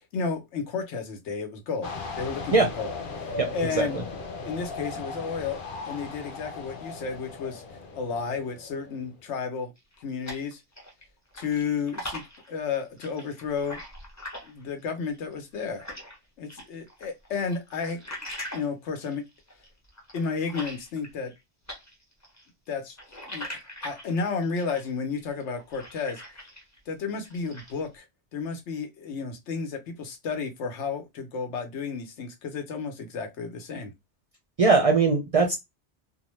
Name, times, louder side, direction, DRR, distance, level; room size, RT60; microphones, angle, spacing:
voice 1, 0.1-4.0 4.4-7.6 7.9-9.7 10.0-10.6 11.4-12.2 12.5-13.8 14.4-15.8 16.4-18.0 18.5-19.2 20.1-21.3 22.7-23.0 23.3-26.2 26.9-28.1 28.3-33.9, left 5 dB, 90° left, 1.0 m, -32 dB
sound 1, 1.8-9.2, left 4 dB, 55° left, 0.7 m, -38 dB
sound 2, 9.8-11.0 11.3-16.2 16.5-21.4 21.7-26.8 27.1-27.9, left 1 dB, 15° left, 0.7 m, -42 dB
voice 2, 34.6-35.5, right 4 dB, 50° right, 0.4 m, -20 dB
2.5 x 2.1 x 3.0 m
omnidirectional pair, 1.1 m